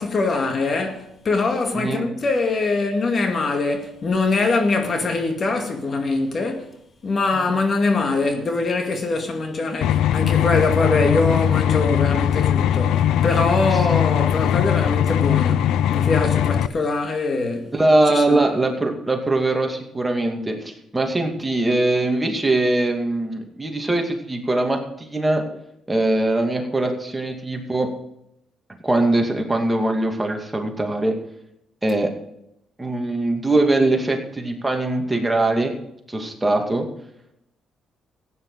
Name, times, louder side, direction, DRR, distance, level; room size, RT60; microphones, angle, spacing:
voice 1, 0.0-6.7 7.0-17.7 18.1-18.4, left 3 dB, 45° left, 2.1 m, -23 dB
voice 2, 1.7-2.1 7.3-7.5 17.7-25.4 25.9-27.9 28.8-31.2 31.8-32.1 32.8-35.7 36.1-36.9, right 2 dB, 15° right, 2.4 m, -21 dB
sound 1, 9.8-16.7, left 10 dB, 85° left, 0.4 m, -20 dB
14.5 x 9.6 x 4.9 m
cardioid pair, 90°, 0 cm